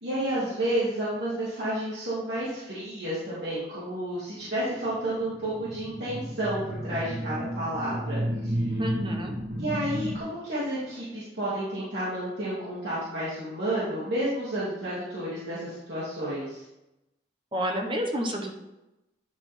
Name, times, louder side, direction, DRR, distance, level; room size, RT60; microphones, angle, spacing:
voice 1, 0.0-8.8 9.6-16.6, right 1 dB, 75° right, -11 dB, 2.6 m, -31 dB
sound 1, 4.9-10.2, right 1 dB, 55° right, 1.3 m, -32 dB
voice 2, 8.8-9.4 17.5-18.6, equal, 30° right, 2 dB, 1.1 m, -29 dB
10.5 x 3.8 x 4.5 m, 0.94 s
head